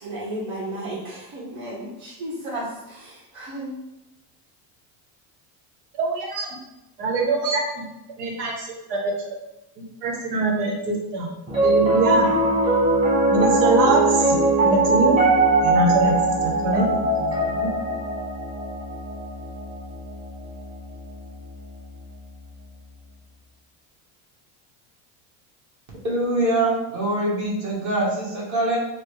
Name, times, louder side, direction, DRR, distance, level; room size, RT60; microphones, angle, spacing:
voice 1, 0.0-3.7, right 1 dB, 65° right, -8 dB, 1.4 m, -33 dB
voice 2, 6.0-6.5 7.0-7.8 8.2-8.6 8.9-9.3 9.8-11.3 11.6-12.3 13.3-14.3 14.6-15.2 15.6-16.1 16.4-16.8 17.2-17.7, right 2 dB, 90° right, 0 dB, 1.1 m, -23 dB
Piano, 11.5-21.8, right 2 dB, 15° right, 0.9 m, -21 dB
voice 3, 26.0-28.8, right 1 dB, 40° right, -5 dB, 1.4 m, -23 dB
4.1 x 2.1 x 3.2 m, 0.92 s
supercardioid pair, 120°, 47 cm